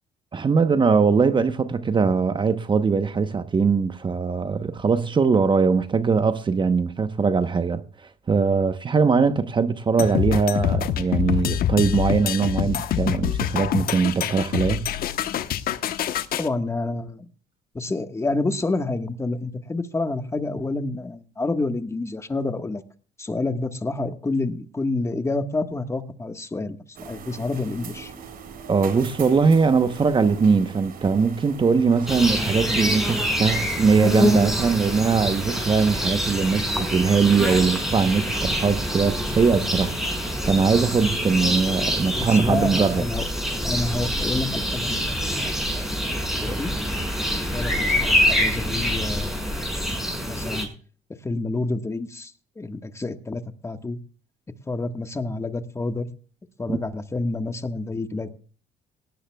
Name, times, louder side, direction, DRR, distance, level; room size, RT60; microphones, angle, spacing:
voice 1, 0.3-7.8 8.3-14.9 28.7-39.9 40.5-43.0 56.7-56.8, right 5 dB, 30° right, 0.9 m, -21 dB
sound 1, 10.0-16.5, left 10 dB, 60° left, 1.0 m, -25 dB
voice 2, 16.4-17.3 17.7-22.8 23.2-28.1 42.1-43.3 43.6-46.7 47.5-49.8 50.2-50.7 51.2-54.0 54.7-56.1 56.6-58.3, left 2 dB, 15° left, 1.4 m, -29 dB
sound 2, 26.9-35.7, right 6 dB, 60° right, 3.5 m, -41 dB
sound 3, 32.1-50.6, equal, ahead, 5.7 m, -25 dB
18.5 x 18.0 x 2.3 m
cardioid pair, 110°, 17 cm